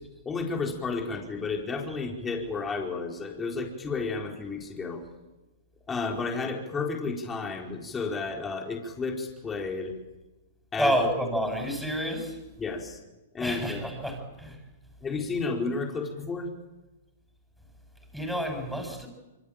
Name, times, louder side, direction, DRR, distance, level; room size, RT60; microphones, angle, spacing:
voice 1, 0.2-5.0 5.9-9.9 10.7-10.9 12.6-13.0 13.3-13.9 15.0-16.5, left 4 dB, 15° left, 1 dB, 4.5 m, -32 dB
voice 2, 10.8-12.4 13.4-14.6 18.1-19.1, equal, ahead, 4 dB, 7.4 m, -29 dB
26.5 x 24.0 x 8.9 m, 1.1 s
hypercardioid pair, 130°, 0 cm